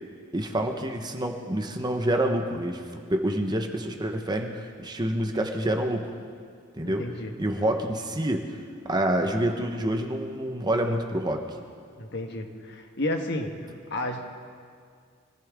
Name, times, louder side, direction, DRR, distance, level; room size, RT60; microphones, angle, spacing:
voice 1, 0.3-2.8 3.1-6.1 6.8-7.0 7.4-8.5 8.8-11.4, right 1 dB, 20° right, 4 dB, 1.1 m, -27 dB
voice 2, 6.8-7.3 12.0-13.5 13.9-14.3, left 1 dB, 60° left, 4 dB, 1.4 m, -31 dB
24.5 x 14.5 x 3.7 m, 2.1 s
head